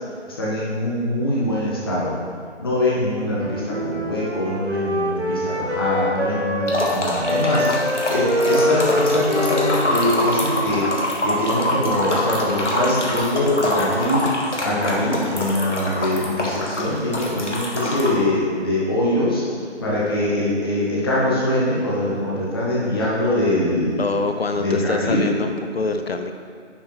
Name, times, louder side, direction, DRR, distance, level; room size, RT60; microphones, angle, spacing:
voice 1, 0.3-2.1 2.6-19.4 19.8-24.0 24.5-25.2, left 1 dB, 20° left, -6 dB, 1.1 m, -23 dB
Wind instrument woodwind instrument, 3.2-6.9 7.2-11.3, left 1 dB, 60° right, 1.1 m, -25 dB
sound 1, 6.7-18.1, left 1 dB, 75° left, 1.5 m, -25 dB
voice 2, 24.0-26.3, left 3 dB, 55° left, 7 dB, 0.5 m, -25 dB
9.7 x 5.0 x 3.1 m, 2.3 s
figure-of-eight pair, 155°, 36 cm